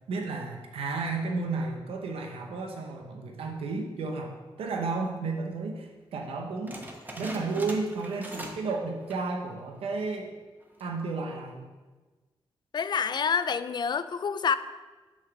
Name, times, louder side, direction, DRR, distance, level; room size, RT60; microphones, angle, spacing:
voice 1, 0.1-6.8 7.2-10.3 10.8-11.7, right 3 dB, 90° right, 2 dB, 0.7 m, -32 dB
sound 1, 6.7-8.7 9.0-9.4 9.8-9.9 10.6-11.0, right 1 dB, 20° right, 1.2 m, -41 dB
voice 2, 12.7-14.6, left 6 dB, 50° left, 13 dB, 0.4 m, -27 dB
6.1 x 4.0 x 5.7 m, 1.3 s
cardioid pair, 65°, 10 cm